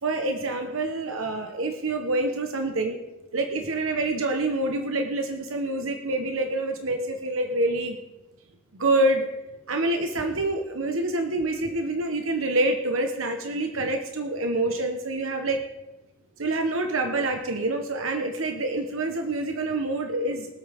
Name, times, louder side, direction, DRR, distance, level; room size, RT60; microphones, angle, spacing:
voice 1, 0.0-3.0 3.3-8.0 8.7-9.3 9.7-15.6 16.4-20.5, right 2 dB, 80° right, 4 dB, 1.1 m, -26 dB
23.0 x 8.2 x 3.6 m, 1.1 s
head